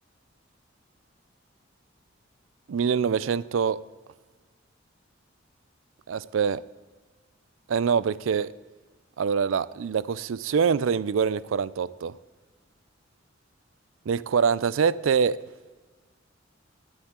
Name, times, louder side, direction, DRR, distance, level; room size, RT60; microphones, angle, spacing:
voice 1, 2.7-3.8 6.1-6.6 7.7-8.5 9.2-12.2 14.1-15.4, right 6 dB, 75° right, 0.4 m, -24 dB
19.0 x 9.7 x 3.7 m
head